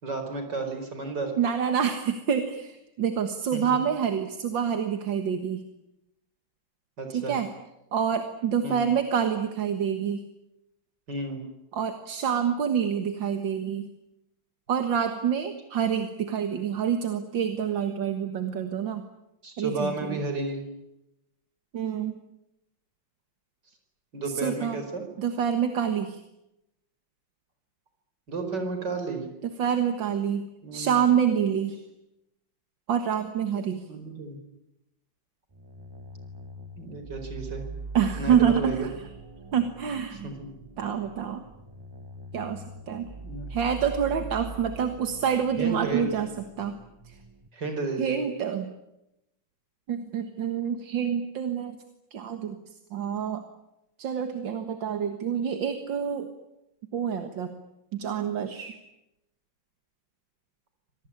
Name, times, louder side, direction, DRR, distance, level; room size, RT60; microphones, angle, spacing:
voice 1, 0.0-1.3 3.5-3.8 7.0-7.4 8.6-8.9 11.1-11.5 19.4-20.6 24.1-25.1 28.3-29.3 30.6-31.0 33.9-34.4 36.8-37.6 38.2-38.9 40.2-40.5 43.2-43.5 45.6-46.1 47.5-48.2, right 3 dB, 70° right, 6 dB, 5.2 m, -32 dB
voice 2, 1.4-5.6 7.1-7.5 7.9-10.2 11.7-13.9 14.7-19.0 19.6-20.2 21.7-22.2 24.3-24.8 25.2-26.2 29.6-31.8 32.9-33.8 37.9-38.9 39.5-40.3 40.8-41.4 42.3-43.1 43.5-46.3 46.6-46.8 47.1-47.2 48.0-48.7 49.9-51.8 52.1-52.6 52.9-53.4 54.0-56.3 56.9-57.5 57.9-58.8, right 8 dB, 85° right, 7 dB, 2.3 m, -27 dB
sound 1, 35.5-47.5, right 3 dB, 20° right, 0.6 m, -42 dB
26.0 x 19.0 x 10.0 m, 0.90 s
omnidirectional pair, 2.0 m